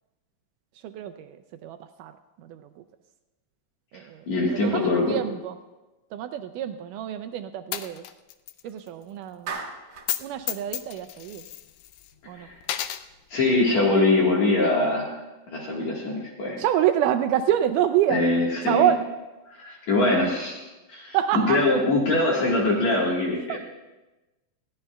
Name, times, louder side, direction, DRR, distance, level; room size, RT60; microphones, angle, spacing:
voice 1, 0.8-1.4 1.6-2.8 3.9-5.6 6.1-8.0 8.6-9.6 10.2-11.5 12.3-12.5 16.6-18.3 18.7-19.1 21.1-21.7 23.5-23.6, right 10 dB, 80° right, 8 dB, 2.0 m, -27 dB
voice 2, 4.3-5.2 12.3-12.6 13.3-15.1 15.5-16.6 18.1-18.9 19.5-20.6 20.9-21.2 21.5-23.6, left 2 dB, 60° left, -3 dB, 2.7 m, -23 dB
Coin (dropping), 7.7-8.6 8.9-9.0 10.0-10.2 10.5-12.1 12.6-13.0, left 13 dB, 80° left, 1.9 m, -32 dB
Clapping, 9.5-10.1, right 5 dB, 50° right, 1.7 m, -35 dB
20.5 x 16.0 x 2.3 m, 1.1 s
omnidirectional pair, 3.9 m